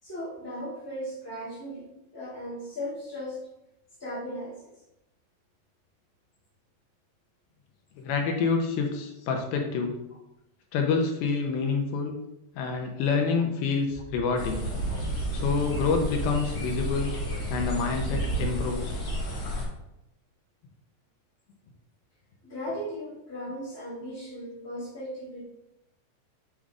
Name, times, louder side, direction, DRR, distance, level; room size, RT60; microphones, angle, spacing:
voice 1, 0.0-3.4 4.0-4.7 22.4-25.4, equal, 10° left, -12 dB, 1.0 m, -37 dB
voice 2, 8.0-10.0 10.7-12.2 12.6-14.7 15.3-17.1 17.5-19.0, left 5 dB, 80° left, 2 dB, 2.5 m, -27 dB
Speech / Wind, 13.9-18.8, right 3 dB, 75° right, 4.4 m, -34 dB
sound 1, 14.4-19.7, left 1 dB, 45° left, 2.5 m, -33 dB
9.0 x 5.1 x 2.4 m, 0.87 s
omnidirectional pair, 4.5 m